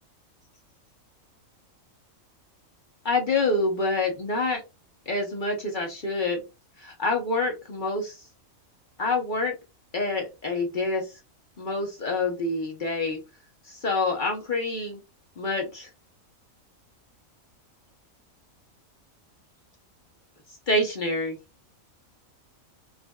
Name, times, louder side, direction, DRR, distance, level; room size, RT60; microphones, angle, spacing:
voice 1, 3.0-4.6 5.1-6.4 6.8-8.1 9.0-9.5 9.9-11.1 11.6-13.2 13.7-15.0 15.4-15.9 20.7-21.4, left 2 dB, 45° left, 1 dB, 0.8 m, -27 dB
4.8 x 2.5 x 2.2 m, 0.26 s
omnidirectional pair, 1.4 m